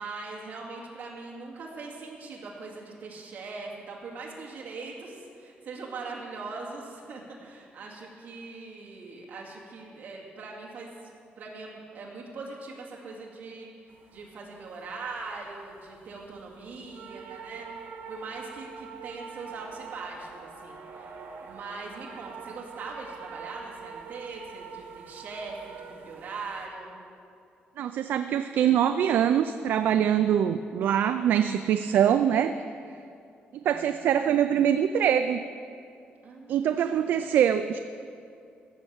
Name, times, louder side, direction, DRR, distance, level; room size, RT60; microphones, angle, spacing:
voice 1, 0.0-11.1 11.4-21.1 21.4-27.0 32.1-32.4 33.6-33.9 36.2-37.1, right 3 dB, 50° right, -3 dB, 2.3 m, -41 dB
sound 1, 13.9-26.7, right 6 dB, 85° right, 1.6 m, -45 dB
voice 2, 27.8-32.5 33.6-35.4 36.5-37.8, right 9 dB, 65° right, 9 dB, 0.4 m, -23 dB
15.5 x 6.4 x 7.2 m, 2.4 s
cardioid pair, 180°, 4 cm